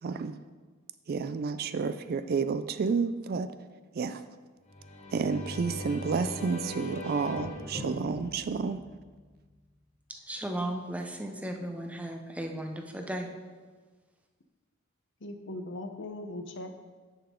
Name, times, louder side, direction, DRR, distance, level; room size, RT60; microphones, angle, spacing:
voice 1, 0.0-0.4 1.1-3.5 3.9-4.2 5.1-8.9, right 5 dB, 50° right, 12 dB, 0.4 m, -30 dB
sound 1, 4.7-9.4, left 1 dB, 35° left, 0.9 m, -40 dB
voice 2, 10.3-13.3, right 1 dB, 5° right, 3 dB, 0.7 m, -35 dB
voice 3, 15.2-16.7, left 1 dB, 65° left, 7 dB, 0.8 m, -39 dB
10.0 x 5.7 x 3.7 m, 1.4 s
head